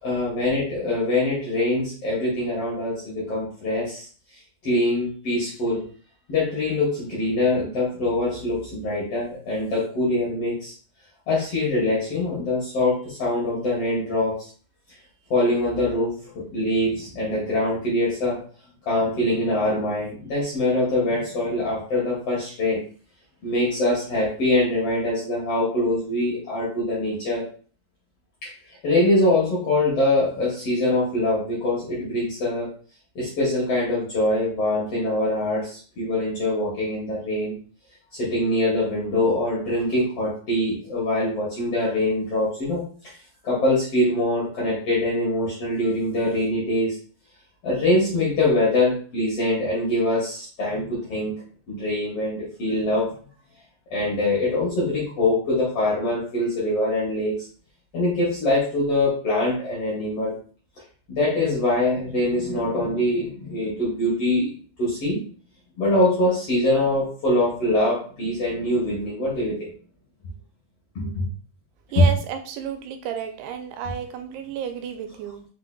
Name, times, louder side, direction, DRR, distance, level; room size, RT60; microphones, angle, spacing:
voice 1, 0.0-4.1 4.6-5.8 6.3-10.7 11.3-14.4 15.3-18.4 18.8-22.8 23.4-27.4 28.4-28.5 28.8-32.7 33.2-37.5 38.1-43.2 43.4-46.9 47.6-51.3 51.7-53.1 53.9-57.5 57.9-60.4 61.1-64.5 64.8-65.2 65.8-69.7 70.9-71.3 71.9-72.1, left 1 dB, 55° left, -6 dB, 1.7 m, -23 dB
voice 2, 71.9-75.5, right 8 dB, 85° right, 7 dB, 2.6 m, -32 dB
5.7 x 3.8 x 2.2 m, 0.42 s
omnidirectional pair, 4.5 m